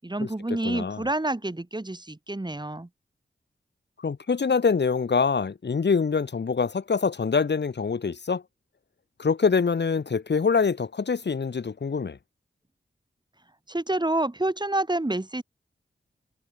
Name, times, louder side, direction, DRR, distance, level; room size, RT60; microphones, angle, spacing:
voice 1, 0.0-2.9 13.7-15.4, right 1 dB, 25° right, 6.0 m, -28 dB
voice 2, 0.6-1.0 4.0-8.4 9.2-12.2, left 5 dB, 65° left, 3.4 m, -25 dB
cardioid pair, 45°, 19 cm